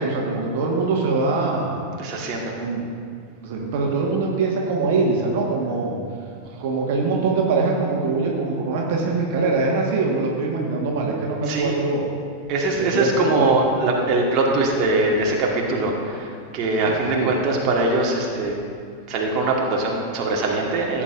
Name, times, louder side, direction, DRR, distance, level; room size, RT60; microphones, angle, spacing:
voice 1, 0.0-2.0 2.6-2.8 3.4-6.0 6.6-12.0 12.8-13.4 16.8-17.3, right 3 dB, 50° right, -1 dB, 1.5 m, -23 dB
voice 2, 2.0-2.6 6.5-6.6 11.5-11.8 12.5-18.6 19.1-21.0, right 2 dB, 35° right, -2 dB, 1.5 m, -22 dB
16.5 x 8.7 x 2.5 m, 2.2 s
figure-of-eight pair, 90°, 0 cm